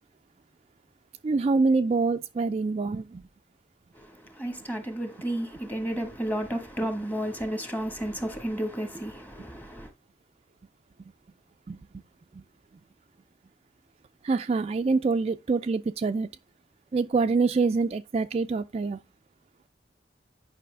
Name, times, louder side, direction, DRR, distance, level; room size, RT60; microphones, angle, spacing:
voice 1, 1.2-3.2 11.7-11.8 12.3-12.4 14.2-16.3 16.9-19.0, right 4 dB, 35° right, 0.3 m, -25 dB
voice 2, 3.9-9.9, right 1 dB, 10° left, 1.3 m, -32 dB
9.3 x 5.5 x 3.3 m
head